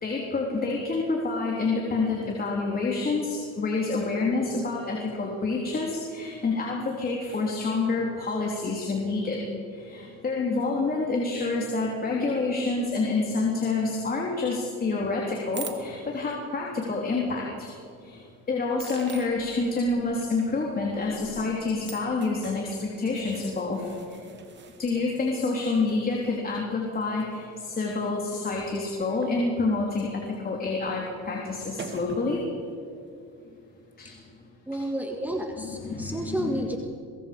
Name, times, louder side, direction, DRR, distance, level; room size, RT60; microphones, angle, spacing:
voice 1, 0.0-9.4 9.7-17.7 18.0-24.2 24.8-32.4 34.0-34.1 34.7-34.8 35.6-36.6, left 3 dB, 25° left, -2 dB, 3.5 m, -28 dB
sound 1, 15.5-16.4 17.3-17.4 18.8-29.3 29.7-29.9 31.2-31.3 31.5-32.5, right 5 dB, 35° right, 2.4 m, -45 dB
voice 2, 34.7-36.8, equal, 5° right, 3 dB, 1.6 m, -31 dB
23.5 x 22.0 x 5.3 m, 2.4 s
cardioid pair, 115°, 33 cm